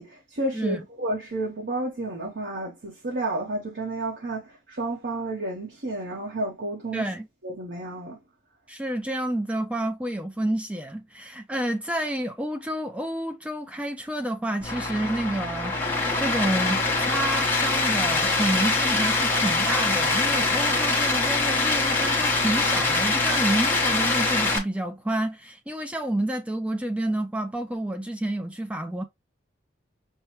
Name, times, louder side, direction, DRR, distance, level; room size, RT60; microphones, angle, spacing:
voice 1, 0.0-7.1 7.4-8.2, right 2 dB, 60° right, 0.8 m, -31 dB
voice 2, 6.9-7.3 8.7-29.1, right 1 dB, 5° right, 0.3 m, -29 dB
sound 1, 14.6-24.6, left 3 dB, 10° left, 0.9 m, -24 dB
5.6 x 2.1 x 3.0 m
head